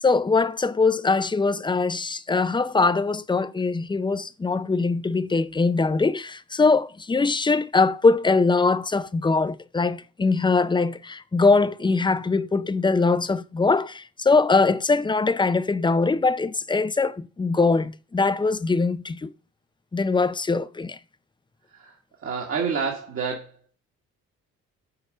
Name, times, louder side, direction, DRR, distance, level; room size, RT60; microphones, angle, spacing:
voice 1, 0.0-19.3 19.9-21.0, left 4 dB, 15° left, 0.5 m, -22 dB
voice 2, 21.7-23.6, right 5 dB, 50° right, 1.7 m, -29 dB
6.7 x 4.7 x 6.5 m
cardioid pair, 90°, 30 cm